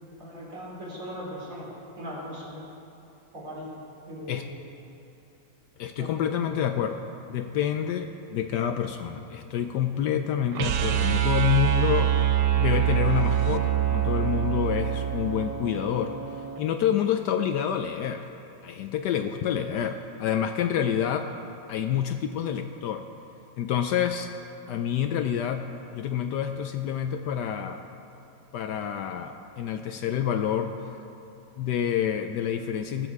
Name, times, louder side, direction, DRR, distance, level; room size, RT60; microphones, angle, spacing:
voice 1, 0.2-2.6 3.3-3.7 4.1-4.6 5.9-6.1, equal, 45° right, -4 dB, 3.2 m, -39 dB
voice 2, 5.8-7.0 7.3-12.2 12.6-16.1 16.6-18.3 18.6-21.3 21.7-23.0 23.6-24.3 24.7-27.8 28.5-31.0 31.6-33.1, left 9 dB, 70° left, 7 dB, 1.1 m, -28 dB
sound 1, 10.5-16.6, right 11 dB, 70° right, 1.2 m, -25 dB
19.5 x 8.1 x 4.7 m, 2.9 s
omnidirectional pair, 2.0 m